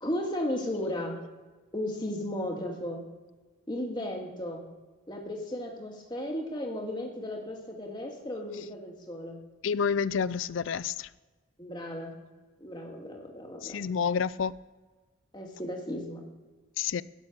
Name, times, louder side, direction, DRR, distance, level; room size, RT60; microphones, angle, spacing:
voice 1, 0.0-1.2 1.7-3.0 3.7-4.6 5.1-9.4 11.6-12.2 12.6-13.9 15.3-16.2, left 1 dB, 20° left, 2.1 m, -35 dB
voice 2, 9.6-11.1 13.6-14.5 16.8-17.0, left 6 dB, 75° left, 0.4 m, -29 dB
13.0 x 6.9 x 8.3 m
head